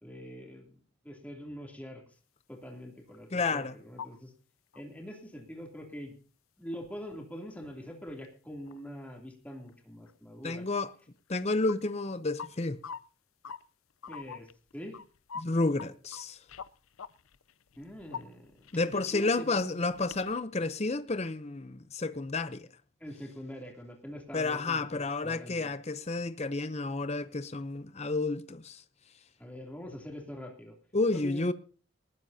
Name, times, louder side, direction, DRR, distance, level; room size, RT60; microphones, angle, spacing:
voice 1, 0.0-0.7 1.0-2.0 2.5-4.3 4.7-6.1 6.6-10.6 14.1-14.5 14.7-15.0 17.8-19.6 23.0-25.7 29.4-30.8 31.1-31.5, equal, 5° left, 2.9 m, -44 dB
sound 1, 3.1-3.7 4.0-4.2 4.7-4.8 5.1-5.2 6.8-6.9 7.8-7.9 8.1-8.3 8.7-9.0 9.7-9.8 10.1-10.2 11.3-11.8 12.4-12.5 12.8-13.0 13.4-13.6 14.0-15.9 16.1-19.3 19.9-20.4, left 6 dB, 85° left, 0.6 m, -44 dB
voice 2, 3.3-3.7 10.4-10.9 11.3-12.8 15.4-16.4 18.7-22.7 24.3-28.8 30.9-31.5, left 3 dB, 30° left, 0.7 m, -31 dB
19.5 x 15.0 x 2.8 m
head